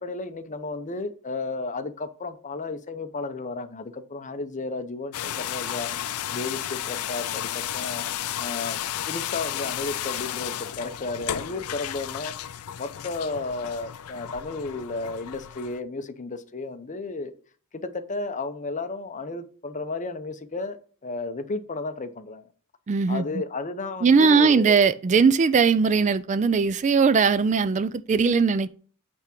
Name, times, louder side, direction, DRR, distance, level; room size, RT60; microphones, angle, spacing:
voice 1, 0.0-8.0 8.4-8.8 9.1-12.3 12.8-17.3 17.7-20.8 21.0-22.5 23.1-24.8, left 3 dB, 35° left, 0.7 m, -33 dB
sound 1, 5.1-15.8, left 11 dB, 85° left, 0.4 m, -33 dB
voice 2, 22.9-23.3 24.0-28.7, right 5 dB, 35° right, 0.3 m, -19 dB
8.8 x 3.5 x 5.9 m
head